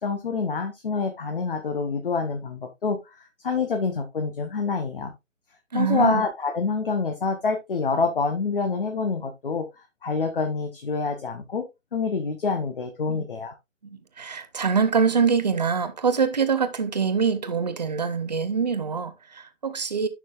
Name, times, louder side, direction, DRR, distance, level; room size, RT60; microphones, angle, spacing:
voice 1, 0.0-5.1 5.7-9.6 10.0-11.6 11.9-13.5, left 4 dB, 40° left, 1.3 m, -27 dB
voice 2, 5.7-6.2 13.1-13.3 13.8-20.1, right 6 dB, 30° right, 0.8 m, -24 dB
10.5 x 6.0 x 2.6 m
figure-of-eight pair, 150°, 40 cm